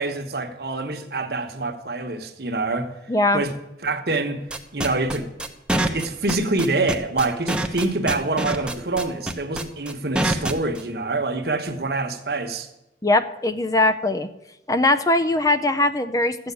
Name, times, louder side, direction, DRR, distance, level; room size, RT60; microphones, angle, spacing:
voice 1, 0.0-2.9 3.3-3.5 3.8-4.4 4.7-5.3 5.8-12.7, right 2 dB, 60° right, 1.3 m, -26 dB
voice 2, 3.1-3.4 13.0-14.3 14.7-16.4, left 2 dB, 20° left, 0.5 m, -20 dB
sound 1, 4.5-10.8, right 1 dB, 5° right, 0.8 m, -25 dB
13.0 x 7.9 x 8.3 m
head